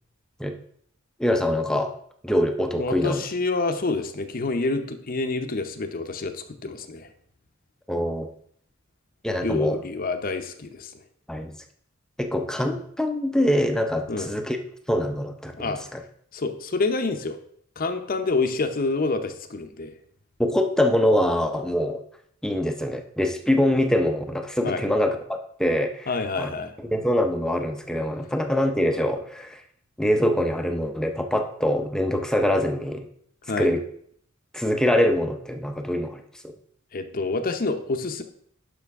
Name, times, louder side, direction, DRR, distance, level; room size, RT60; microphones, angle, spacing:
voice 1, 1.2-1.9 2.2-3.2 7.9-8.3 9.2-9.8 11.3-11.6 12.2-14.6 14.9-16.0 20.4-22.0 22.4-26.1 26.4-29.6 30.0-33.1 33.6-33.9 34.5-36.5, left 1 dB, 5° left, 5 dB, 0.6 m, -24 dB
voice 2, 2.8-7.1 9.4-10.9 14.1-14.3 15.6-15.8 16.3-17.4 17.8-19.9 24.6-24.8 26.1-26.7 33.5-33.7 36.9-38.2, left 3 dB, 45° left, 8 dB, 0.7 m, -27 dB
11.0 x 5.5 x 3.6 m, 0.64 s
head